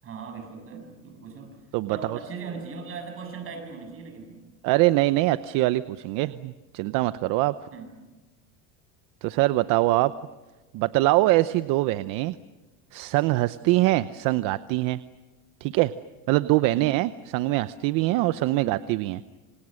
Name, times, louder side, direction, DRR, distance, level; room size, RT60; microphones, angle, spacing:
voice 1, 0.0-1.6 1.9-4.4 7.7-8.0 16.7-17.0 18.5-18.8, right 5 dB, 35° right, 5 dB, 6.9 m, -39 dB
voice 2, 1.7-2.2 4.6-7.6 9.2-10.1 10.7-12.4 12.9-15.0 15.6-15.9 16.3-19.2, right 18 dB, 55° right, 13 dB, 0.8 m, -23 dB
28.0 x 27.5 x 6.5 m, 1.1 s
supercardioid pair, 140°, 39 cm